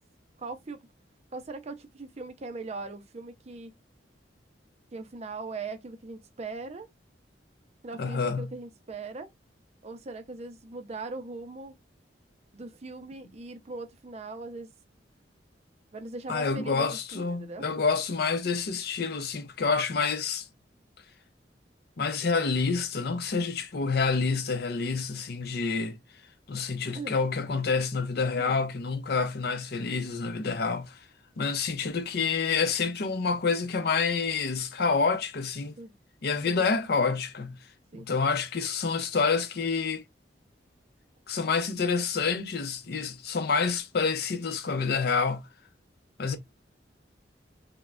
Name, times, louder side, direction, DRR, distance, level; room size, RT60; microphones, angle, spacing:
voice 1, 0.4-0.8 1.3-3.7 4.9-6.9 7.8-9.3 9.8-11.7 12.5-14.7 15.9-16.9 17.1-17.7 26.6-27.2 28.4-28.6 35.8-35.9 36.4-36.6 37.9-38.1, right 3 dB, 40° right, 0.5 m, -40 dB
voice 2, 8.0-8.5 16.3-20.5 22.0-26.0 26.5-31.0 31.4-35.7 36.2-37.6 37.9-40.1 41.3-45.5 46.2-46.4, left 4 dB, 60° left, 0.5 m, -28 dB
3.1 x 2.1 x 2.3 m
head